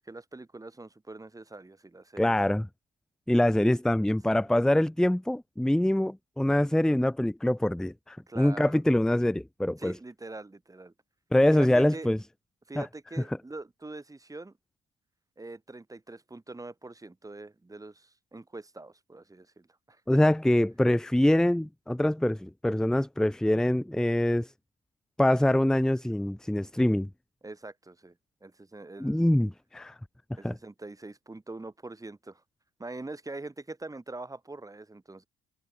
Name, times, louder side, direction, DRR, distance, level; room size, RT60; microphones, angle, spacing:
voice 1, 0.1-2.3 4.3-4.5 8.3-8.8 9.8-10.9 11.5-12.1 12.7-14.5 15.4-20.0 27.4-28.1 28.4-29.2 30.4-32.4 32.8-35.3, right 2 dB, 15° right, 4.2 m, -43 dB
voice 2, 2.2-2.7 3.3-10.0 11.3-12.2 12.8-12.9 20.1-24.5 25.2-27.1 29.0-30.0 30.4-30.5, left 1 dB, 5° left, 0.6 m, -24 dB
cardioid pair, 90°, 20 cm